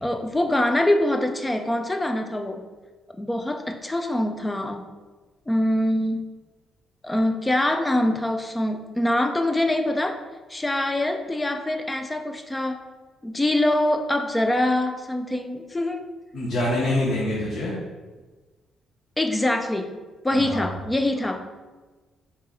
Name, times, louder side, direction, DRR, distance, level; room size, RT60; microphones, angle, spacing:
voice 1, 0.0-2.6 3.2-4.9 5.5-6.3 7.0-10.2 10.5-12.8 13.2-16.1 19.2-21.5, left 1 dB, 15° left, 5 dB, 0.4 m, -24 dB
voice 2, 16.3-17.8 20.3-20.7, left 1 dB, 55° left, -7 dB, 1.1 m, -25 dB
4.5 x 2.8 x 3.8 m, 1.3 s
cardioid pair, 90°, 0 cm